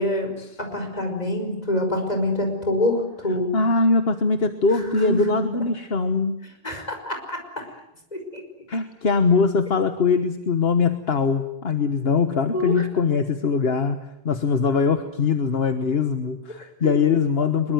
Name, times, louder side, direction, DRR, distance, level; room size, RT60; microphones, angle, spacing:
voice 1, 0.0-0.3 0.6-3.5 4.8-5.5 6.6-7.4 8.1-8.4 12.5-12.7, left 1 dB, 40° left, 4 dB, 5.5 m, -25 dB
voice 2, 3.5-6.4 7.7-7.8 8.7-14.0 14.2-17.7, left 4 dB, 70° left, 9 dB, 1.5 m, -22 dB
24.0 x 22.5 x 9.4 m, 0.81 s
omnidirectional pair, 1.1 m